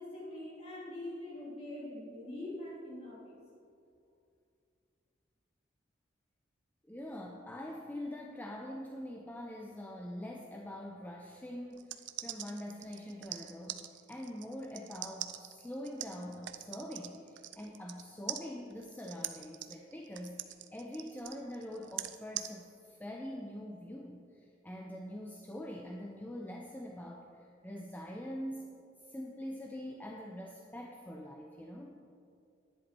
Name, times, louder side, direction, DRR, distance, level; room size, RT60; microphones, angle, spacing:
voice 1, 0.0-3.4, left 1 dB, 35° left, -6 dB, 3.1 m, -43 dB
voice 2, 6.9-28.7 29.1-31.9, left 1 dB, 10° left, 0 dB, 0.6 m, -44 dB
sound 1, 11.7-18.0 18.3-22.5, right 13 dB, 80° right, 0.5 m, -42 dB
10.5 x 10.5 x 4.5 m, 2.4 s
head